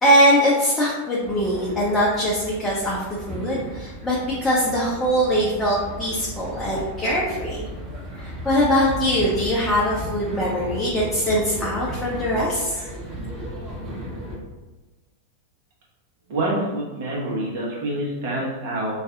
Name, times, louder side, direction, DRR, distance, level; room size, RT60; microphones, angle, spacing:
voice 1, 0.0-7.6 8.2-12.8, equal, 15° left, -6 dB, 0.6 m, -22 dB
sound 1, 1.2-14.4, equal, 20° right, 1.0 m, -35 dB
voice 2, 16.3-18.9, right 1 dB, 50° right, -4 dB, 1.0 m, -26 dB
2.6 x 2.4 x 3.6 m, 1.1 s
figure-of-eight pair, 90°, 0 cm